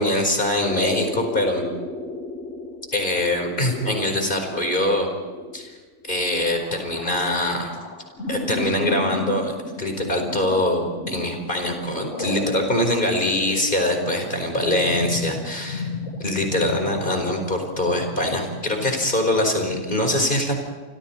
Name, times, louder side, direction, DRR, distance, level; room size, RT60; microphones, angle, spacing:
voice 1, 0.0-1.6 2.9-5.1 5.5-5.7 6.1-7.7 8.3-15.9 16.2-20.6, left 1 dB, 45° left, 4 dB, 4.9 m, -23 dB
sound 1, 0.7-19.9, left 3 dB, 75° left, 2.7 m, -34 dB
29.5 x 25.5 x 4.5 m, 1.4 s
omnidirectional pair, 1.2 m